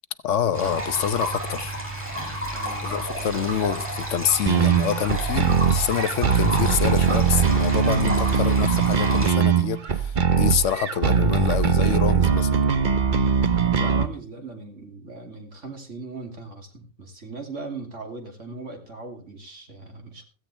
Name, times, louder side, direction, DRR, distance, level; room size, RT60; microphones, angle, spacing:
voice 1, 0.2-1.7 2.8-12.6, left 9 dB, 90° left, 1.2 m, -27 dB
sound 1, 0.5-9.3, right 1 dB, 10° right, 5.2 m, -31 dB
voice 2, 2.5-3.5 13.6-20.2, right 3 dB, 85° right, 3.2 m, -39 dB
sound 2, 4.5-14.1, right 6 dB, 45° right, 1.0 m, -21 dB
16.0 x 15.0 x 3.3 m
omnidirectional pair, 1.2 m